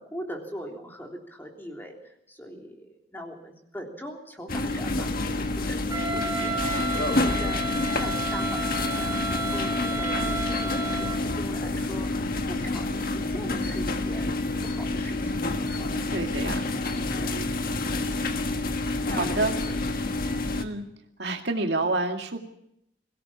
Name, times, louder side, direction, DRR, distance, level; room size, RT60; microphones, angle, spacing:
voice 1, 0.0-14.3 14.6-16.1 17.2-17.5 19.1-19.8, equal, 10° left, 1 dB, 3.3 m, -41 dB
sound 1, 4.5-20.6, left 2 dB, 50° left, 1.6 m, -28 dB
Wind instrument woodwind instrument, 5.9-11.3, right 3 dB, 20° right, 3.4 m, -32 dB
voice 2, 16.1-16.7 19.1-19.5 20.5-20.9 21.2-22.4, right 2 dB, 65° right, 3 dB, 2.2 m, -28 dB
22.5 x 17.0 x 7.2 m, 0.77 s
head